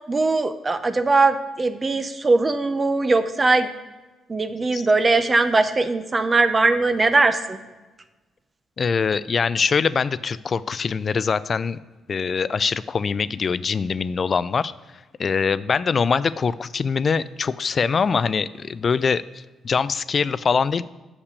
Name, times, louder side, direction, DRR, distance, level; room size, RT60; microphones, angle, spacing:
voice 1, 0.1-3.7 4.3-7.6, right 3 dB, 30° right, 10 dB, 0.7 m, -20 dB
voice 2, 8.8-11.8 12.1-14.7 15.2-20.8, left 5 dB, 45° left, 17 dB, 0.3 m, -23 dB
6.6 x 5.8 x 6.8 m, 1.2 s
cardioid pair, 90°, 0 cm